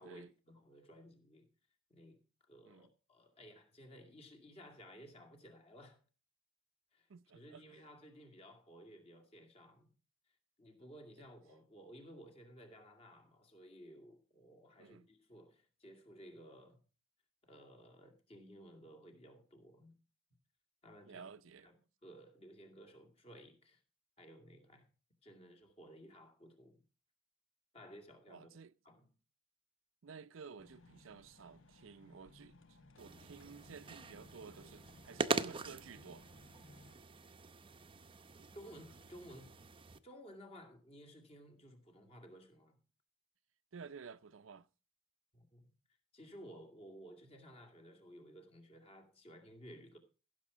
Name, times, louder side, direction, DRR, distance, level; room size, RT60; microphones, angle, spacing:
voice 1, 0.0-1.5 1.9-2.2 2.5-6.0 6.9-7.1 7.3-9.9 10.6-16.8 17.4-20.0 20.8-21.3 21.6-21.8 22.0-23.8 24.2-24.9 25.2-26.8 27.7-28.5 28.8-29.1 38.5-39.6 40.0-42.8 45.3-45.7 46.1-50.0, equal, 30° left, 2.4 m, -56 dB
voice 2, 7.1-7.6 14.8-15.1 21.1-21.7 28.3-28.7 30.0-32.6 33.0-36.2 38.4-38.5 43.7-44.7, right 5 dB, 85° right, 0.5 m, -53 dB
sound 1, 30.6-36.9, left 2 dB, 85° left, 1.1 m, -62 dB
sound 2, 33.0-40.0, right 4 dB, 25° right, 0.7 m, -43 dB
15.5 x 7.0 x 4.9 m
head